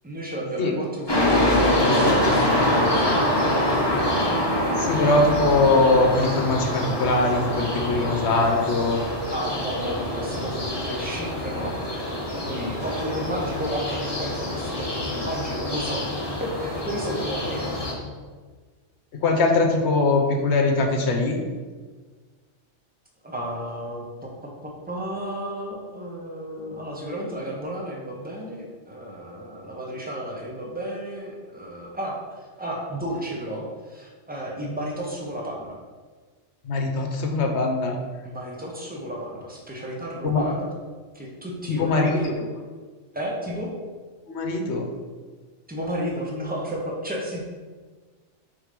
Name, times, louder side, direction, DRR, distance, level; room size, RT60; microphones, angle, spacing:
voice 1, 0.0-3.8 9.3-11.7 12.0-17.7 23.2-24.3 24.6-35.8 38.2-40.7 41.1-42.3 43.1-43.7 45.7-47.4, equal, 10° right, -2 dB, 0.9 m, -33 dB
sound 1, 1.1-17.9, left 1 dB, 20° left, 1.2 m, -25 dB
voice 2, 4.7-9.0 19.1-21.4 36.6-38.0 40.2-40.5 41.7-42.4 44.3-44.9, left 3 dB, 70° left, 3 dB, 1.1 m, -22 dB
4.9 x 3.9 x 5.1 m, 1.4 s
omnidirectional pair, 1.2 m